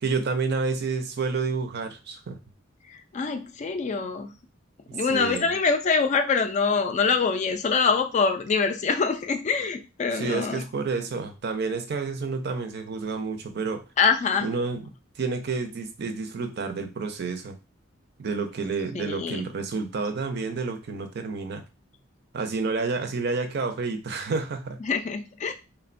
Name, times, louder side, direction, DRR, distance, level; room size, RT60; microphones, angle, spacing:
voice 1, 0.0-2.4 4.9-5.5 10.1-13.8 14.4-14.8 15.2-17.6 18.2-21.6 22.3-24.8, right 4 dB, 55° right, 7 dB, 0.5 m, -29 dB
voice 2, 2.9-4.3 4.9-10.6 14.0-14.5 18.9-19.5 24.8-25.5, left 5 dB, 35° left, 7 dB, 0.3 m, -25 dB
3.3 x 2.1 x 2.4 m, 0.28 s
head